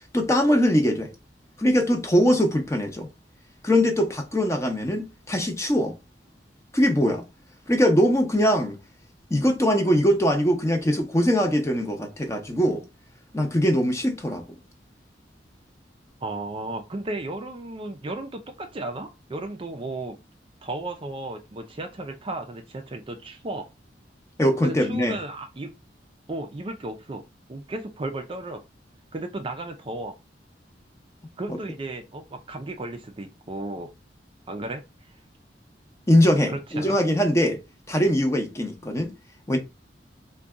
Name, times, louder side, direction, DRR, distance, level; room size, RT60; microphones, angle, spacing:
voice 1, 0.1-1.1 1.6-3.1 3.6-5.9 6.7-7.2 7.7-8.8 9.3-12.8 13.3-14.4 24.4-25.1 31.5-31.6 36.1-37.6 37.9-39.1 39.5-39.6, equal, 15° left, 0.7 m, -21 dB
voice 2, 16.2-20.2 20.6-23.7 24.6-25.7 26.3-27.2 27.5-28.6 29.1-30.1 31.4-33.9 34.5-35.1 36.5-37.0, right 2 dB, 30° right, 0.4 m, -34 dB
3.9 x 2.2 x 3.5 m
head